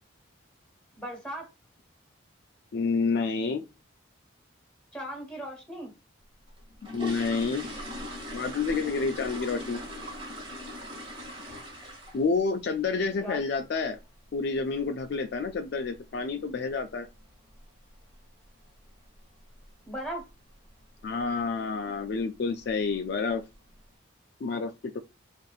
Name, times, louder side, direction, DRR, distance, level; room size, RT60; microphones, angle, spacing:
voice 1, 1.0-1.5 4.9-5.9 13.2-13.4 19.9-20.3, equal, 5° left, 1.2 m, -37 dB
voice 2, 2.7-3.6 6.9-7.6 8.3-9.8 12.1-14.0 14.3-17.1 21.0-23.4 24.4-25.0, left 4 dB, 55° left, 0.3 m, -29 dB
sound 1, 6.5-12.4 12.7-13.0 13.3-13.4 13.8-13.9 14.3-14.5 14.8-14.9 15.5-15.6 15.8-16.0 16.5-16.8 17.1-17.2 17.6-17.8 18.1-18.2 18.6-18.7 19.3-19.6 20.0-20.3 20.7-20.8 21.2-21.3 22.0-22.2 22.6-23.1 23.5-23.6, left 1 dB, 25° right, 1.1 m, -40 dB
4.0 x 2.6 x 2.3 m
head